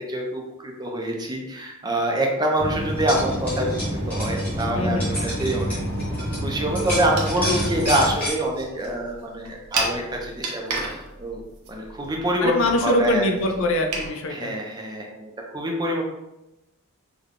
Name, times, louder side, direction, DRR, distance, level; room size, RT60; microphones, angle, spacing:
voice 1, 0.0-5.8 6.4-11.4 11.7-13.2 14.3-16.0, right 1 dB, 20° right, 1 dB, 0.4 m, -26 dB
sound 1, 2.6-8.1, equal, 45° right, 0.8 m, -28 dB
sound 2, 2.9-6.4 6.7-8.4, equal, 5° left, 0.9 m, -31 dB
voice 2, 4.7-5.2 12.4-14.6, left 1 dB, 65° left, 4 dB, 0.4 m, -23 dB
sound 3, 7.2-14.1, right 3 dB, 85° right, 0.7 m, -33 dB
3.6 x 2.1 x 3.5 m, 0.96 s
head